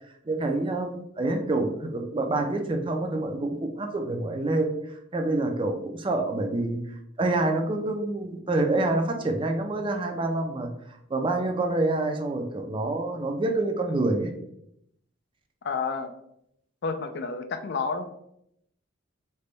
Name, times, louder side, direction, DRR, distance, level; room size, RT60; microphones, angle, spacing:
voice 1, 0.3-4.7 5.1-6.8 7.2-10.7 11.1-14.3, right 2 dB, 25° right, 4 dB, 0.4 m, -27 dB
voice 2, 15.6-16.1 16.8-18.1, left 4 dB, 55° left, 8 dB, 0.4 m, -30 dB
3.4 x 2.2 x 3.9 m, 0.75 s
head